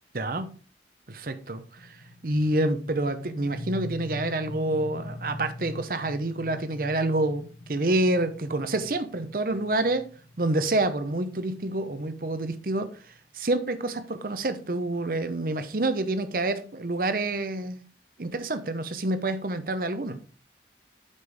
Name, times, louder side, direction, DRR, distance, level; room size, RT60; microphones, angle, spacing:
voice 1, 0.1-0.5 1.1-2.0 2.2-10.1 10.4-17.8 18.2-20.2, right 2 dB, 55° right, 0.8 m, -28 dB
sound 1, 1.8-13.2, left 1 dB, 75° left, 1.3 m, -43 dB
8.4 x 5.1 x 3.5 m
head